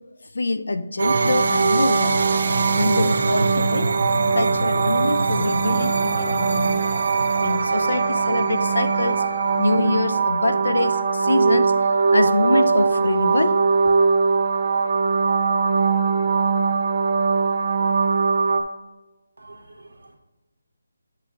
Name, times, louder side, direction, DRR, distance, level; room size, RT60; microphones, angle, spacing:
voice 1, 0.3-2.2 2.7-3.9 4.3-6.9 7.4-9.2 9.6-11.7 12.1-13.6, left 2 dB, 75° left, 10 dB, 0.5 m, -24 dB
sound 1, 1.0-18.6, right 4 dB, 40° right, 0.5 m, -20 dB
voice 2, 19.4-20.2, right 2 dB, 70° right, 2 dB, 1.3 m, -47 dB
9.5 x 5.6 x 2.4 m, 1.1 s
hypercardioid pair, 175°, 0 cm